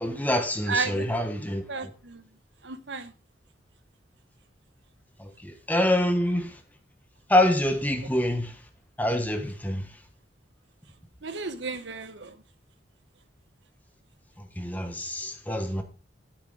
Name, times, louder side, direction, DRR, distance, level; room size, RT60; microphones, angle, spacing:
voice 1, 0.0-1.6 5.4-6.5 7.3-8.5 9.0-9.8 14.6-15.8, left 1 dB, 10° left, 1.2 m, -25 dB
voice 2, 0.7-1.2 1.7-2.2 2.6-3.1 11.2-12.3, right 4 dB, 75° right, 1.0 m, -33 dB
9.4 x 8.1 x 3.8 m
head